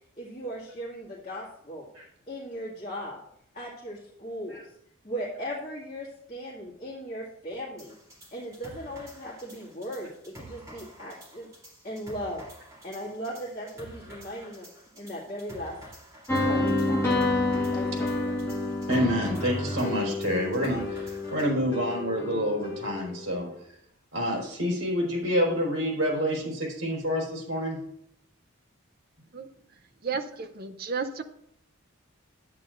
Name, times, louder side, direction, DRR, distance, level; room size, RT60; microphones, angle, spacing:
voice 1, 0.2-1.9 2.3-3.2 3.5-4.7 5.0-7.9 8.3-11.5 11.8-12.4 12.8-14.7 15.0-15.8 16.4-17.3 17.7-18.4, equal, 35° left, -7 dB, 2.0 m, -37 dB
sound 1, 7.8-21.5, right 1 dB, 15° right, 2.5 m, -49 dB
sound 2, 16.3-23.2, left 2 dB, 15° left, 1.4 m, -29 dB
voice 2, 18.9-23.5 24.1-27.8, equal, 70° right, -2 dB, 3.8 m, -28 dB
voice 3, 30.0-31.2, right 5 dB, 45° right, 8 dB, 0.5 m, -32 dB
11.0 x 8.8 x 2.5 m, 0.72 s
head